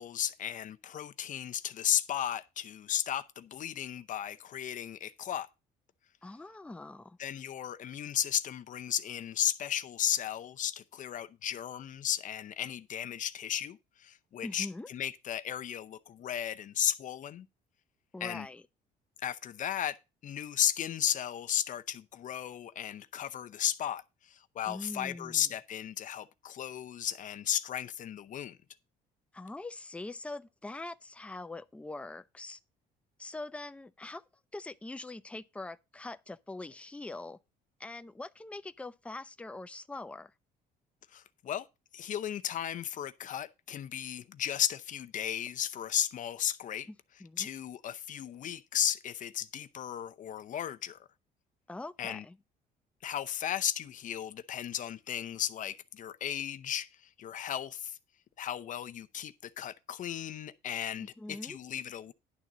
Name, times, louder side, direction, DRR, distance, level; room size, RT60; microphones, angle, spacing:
voice 1, 0.0-5.5 7.2-17.5 18.2-18.5 19.2-20.0 20.2-28.6 41.1-41.7 41.9-46.9 47.4-51.0 52.0-52.2 53.0-58.0 58.4-62.1, left 10 dB, 50° left, 0.6 m, -35 dB
voice 2, 6.2-7.2 14.4-14.9 18.1-18.6 24.7-25.5 29.3-32.6 33.2-34.2 34.5-37.4 37.8-40.3 46.9-47.5 51.7-52.4 61.0-61.6, left 2 dB, 5° left, 0.5 m, -43 dB
11.0 x 3.9 x 7.3 m
cardioid pair, 110°, 17 cm